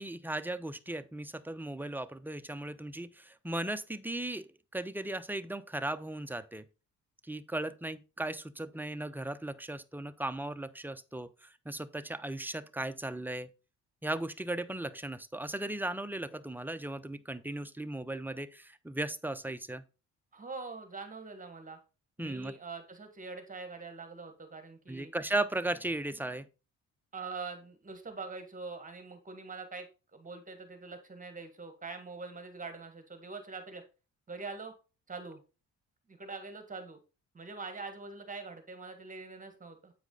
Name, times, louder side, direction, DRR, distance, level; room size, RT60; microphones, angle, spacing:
voice 1, 0.0-6.6 7.3-13.5 14.0-19.8 22.2-22.5 24.9-26.5, right 1 dB, 5° right, 0.5 m, -37 dB
voice 2, 20.3-21.8 22.2-25.1 27.1-29.9 30.1-33.8 34.3-34.7 35.1-35.4 36.1-37.0 37.3-39.9, right 4 dB, 25° right, 1.6 m, -43 dB
8.4 x 4.8 x 3.9 m
cardioid pair, 90°, 30 cm